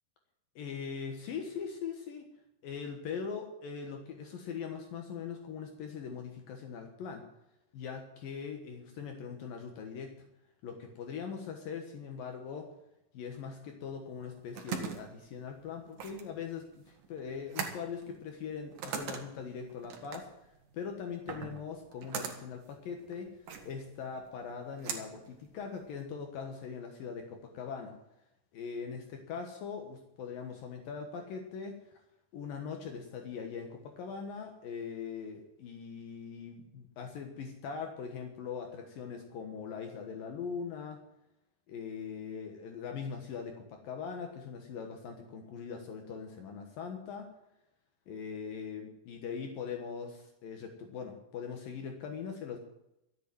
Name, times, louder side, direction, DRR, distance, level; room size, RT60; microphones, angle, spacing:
voice 1, 0.6-2.3 2.6-7.2 7.7-10.1 10.6-12.7 13.1-23.3 23.7-27.9 28.5-31.8 32.3-41.0 41.7-47.3 48.1-52.6, left 6 dB, 65° left, 4 dB, 3.0 m, -41 dB
sound 1, 14.1-26.0, right 6 dB, 55° right, 2.7 m, -42 dB
13.5 x 8.6 x 9.5 m, 0.86 s
omnidirectional pair, 4.5 m